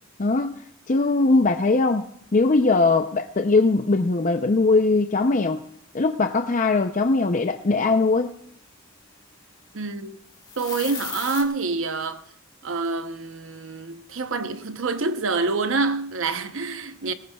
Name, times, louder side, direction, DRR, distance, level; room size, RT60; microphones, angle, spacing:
voice 1, 0.2-0.5 0.9-5.6 5.9-8.3, left 3 dB, 35° left, 0.5 m, -20 dB
voice 2, 9.7-10.2 10.6-12.2 12.6-17.1, right 3 dB, 65° right, 0.8 m, -27 dB
sound 1, 10.3-11.4, left 6 dB, 20° left, 1.8 m, -34 dB
19.5 x 18.0 x 2.3 m
head